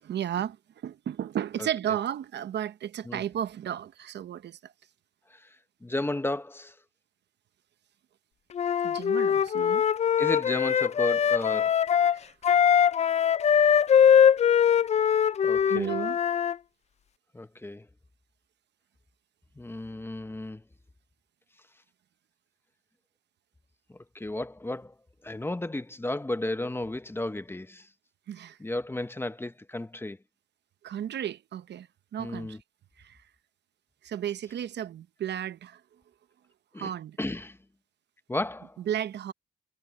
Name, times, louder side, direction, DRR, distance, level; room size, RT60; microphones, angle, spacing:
voice 1, 0.0-4.7 8.8-9.9 12.0-12.3 15.7-16.2 28.3-28.6 30.8-32.6 33.0-33.2 34.0-35.8 36.7-37.2 38.9-39.3, right 10 dB, 60° right, 0.9 m, -33 dB
voice 2, 5.8-6.8 10.2-11.8 15.4-16.0 17.3-17.9 19.6-20.6 23.9-24.9 25.2-27.9 28.6-30.2 32.2-32.6 36.7-36.9 37.2-37.6 38.3-38.8, left 1 dB, 10° left, 1.0 m, -33 dB
Wind instrument woodwind instrument, 8.5-16.5, left 8 dB, 35° left, 0.4 m, -22 dB
cardioid pair, 90°, 20 cm